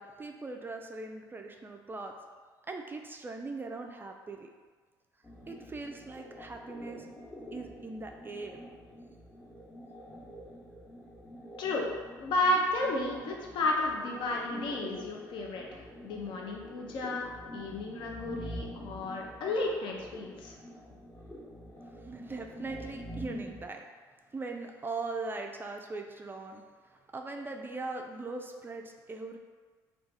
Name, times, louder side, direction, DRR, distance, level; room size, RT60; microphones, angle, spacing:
voice 1, 0.0-2.1 2.7-4.5 5.5-7.1 7.5-8.6 22.0-23.8 24.3-26.6 26.9-29.4, right 3 dB, 20° right, 3 dB, 0.3 m, -40 dB
sound 1, 5.2-23.6, equal, 30° left, 0.9 m, -46 dB
voice 2, 12.2-20.5, left 1 dB, 60° left, -1 dB, 0.5 m, -32 dB
2.4 x 2.3 x 3.9 m, 1.5 s
hypercardioid pair, 60°, 9 cm